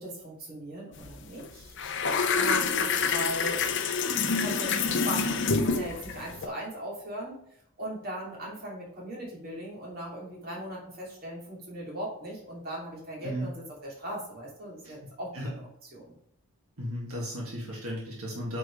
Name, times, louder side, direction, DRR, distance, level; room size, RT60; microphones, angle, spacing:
voice 1, 0.0-1.8 2.3-3.6 4.0-7.5 7.8-13.5 13.8-15.6 15.9-16.1, equal, 45° right, -4 dB, 3.0 m, -39 dB
sound 1, 1.0-1.2 1.4-6.5, left 5 dB, 60° left, 0.7 m, -27 dB
voice 2, 16.8-18.6, equal, 85° right, -3 dB, 2.3 m, -35 dB
8.9 x 4.7 x 3.4 m, 0.72 s
head